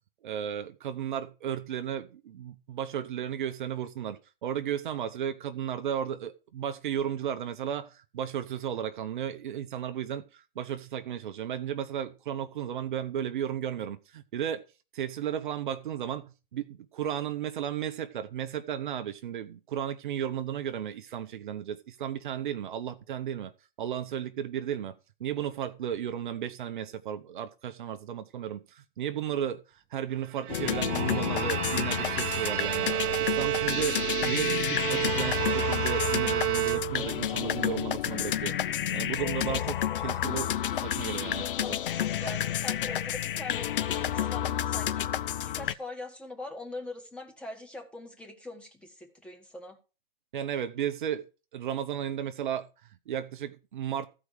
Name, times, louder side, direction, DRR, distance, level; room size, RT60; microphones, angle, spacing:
voice 1, 0.2-14.6 14.9-23.5 23.8-32.9 33.2-38.5 38.9-40.5 40.8-41.5 50.3-51.2 51.5-54.1, right 9 dB, 55° right, 1.0 m, -34 dB
Bowed string instrument, 30.3-37.3, right 17 dB, 25° right, 0.6 m, -31 dB
sound 1, 30.5-45.7, left 10 dB, 60° left, 0.7 m, -30 dB
voice 2, 41.6-49.8, left 2 dB, 5° left, 1.9 m, -42 dB
14.5 x 4.9 x 6.6 m
hypercardioid pair, 140°, 30 cm